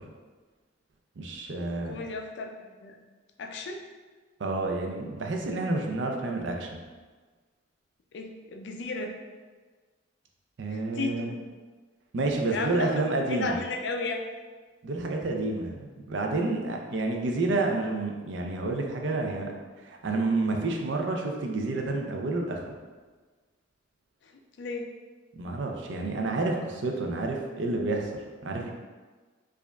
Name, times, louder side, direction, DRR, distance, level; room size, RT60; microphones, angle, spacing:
voice 1, 1.2-2.0 4.4-6.8 10.6-11.3 12.1-13.6 14.8-22.7 25.4-28.7, right 2 dB, 65° right, 2 dB, 0.5 m, -29 dB
voice 2, 1.9-3.0 3.4-3.8 8.1-9.2 10.7-11.4 12.5-13.0 13.3-14.2 24.6-24.9, left 3 dB, 60° left, 3 dB, 0.3 m, -34 dB
4.8 x 2.4 x 2.2 m, 1.4 s
head